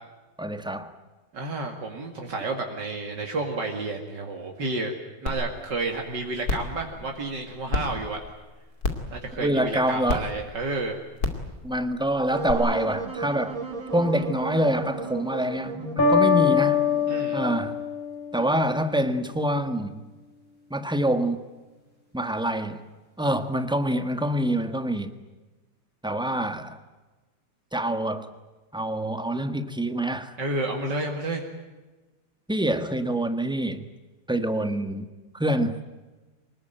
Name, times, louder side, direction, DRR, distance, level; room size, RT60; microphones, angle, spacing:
voice 1, 0.4-0.9 9.4-10.3 11.6-13.6 13.9-16.8 17.3-17.8 18.3-20.0 20.7-21.4 22.1-22.8 23.2-25.1 26.0-26.8 27.7-28.3 28.7-30.3 32.5-33.9 34.3-35.1 35.3-35.8, right 1 dB, 5° right, 1.3 m, -26 dB
voice 2, 1.3-4.9 5.2-8.2 9.1-11.0 17.1-17.4 30.4-31.5, right 2 dB, 70° right, 2.8 m, -30 dB
sound 1, 5.3-5.4 5.8-5.9 6.4-6.7 7.7-7.8 8.8-9.1 10.1-10.2 11.2-11.4 12.5-12.6, left 3 dB, 55° left, 3.1 m, -26 dB
Wind instrument woodwind instrument, 12.3-17.4, right 4 dB, 45° right, 2.8 m, -35 dB
sound 2, 16.0-18.8, left 6 dB, 25° left, 5.0 m, -23 dB
24.5 x 20.5 x 9.1 m
omnidirectional pair, 2.0 m